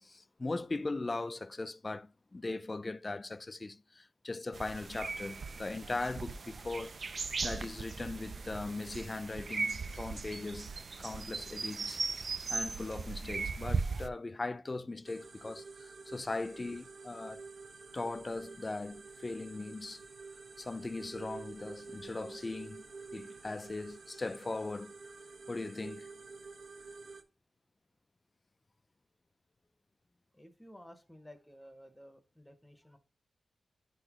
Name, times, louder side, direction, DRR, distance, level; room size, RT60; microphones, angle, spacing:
voice 1, 0.0-7.1 7.4-10.7 11.0-12.0 12.5-17.4 17.9-20.0 20.6-22.8 23.1-24.9 25.5-26.1, left 3 dB, 30° left, 0.3 m, -39 dB
sound 1, 4.5-14.1, right 4 dB, 50° right, 0.3 m, -38 dB
sound 2, 15.0-27.2, right 4 dB, 70° right, 0.8 m, -50 dB
voice 2, 30.3-33.0, equal, 5° left, 0.8 m, -54 dB
10.5 x 3.9 x 2.9 m
wide cardioid pair, 110°, 0 cm